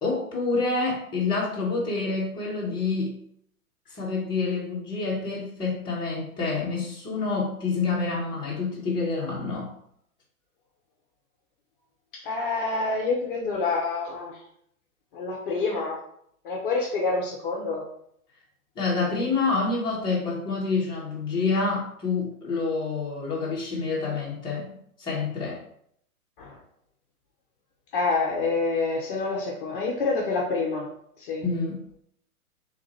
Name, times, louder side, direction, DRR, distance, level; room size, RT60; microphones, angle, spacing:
voice 1, 0.0-3.1 3.9-9.7 18.8-25.6 31.4-31.8, left 4 dB, 10° left, -5 dB, 0.9 m, -27 dB
voice 2, 12.1-14.4 15.1-16.0 16.4-17.8 26.4-26.6 27.9-30.9 31.2-31.4, left 3 dB, 35° left, -2 dB, 0.7 m, -27 dB
3.2 x 2.5 x 4.1 m, 0.69 s
figure-of-eight pair, 120°, 45 cm